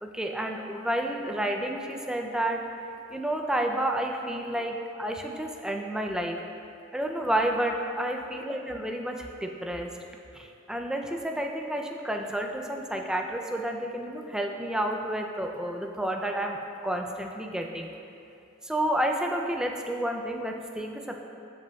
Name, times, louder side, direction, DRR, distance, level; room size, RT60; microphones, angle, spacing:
voice 1, 0.0-2.7 3.1-6.4 6.9-9.9 10.3-17.9 18.6-21.3, right 1 dB, 5° right, 2 dB, 0.3 m, -30 dB
12.5 x 5.2 x 2.2 m, 2.7 s
head